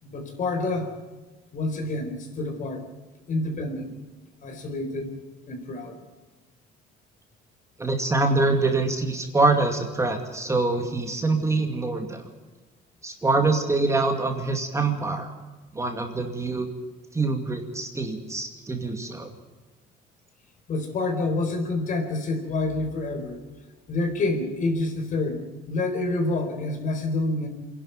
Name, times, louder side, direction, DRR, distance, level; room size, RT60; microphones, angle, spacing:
voice 1, 0.0-0.9 1.5-2.8 3.3-3.9 4.4-5.2 5.5-6.0 20.7-23.4 23.9-27.5, left 2 dB, 50° left, 5 dB, 4.4 m, -28 dB
voice 2, 7.8-12.2 13.0-15.3 15.7-16.7 17.1-19.3, right 3 dB, 15° right, 4 dB, 2.4 m, -25 dB
25.0 x 11.5 x 9.3 m, 1.2 s
cardioid pair, 110°, 17 cm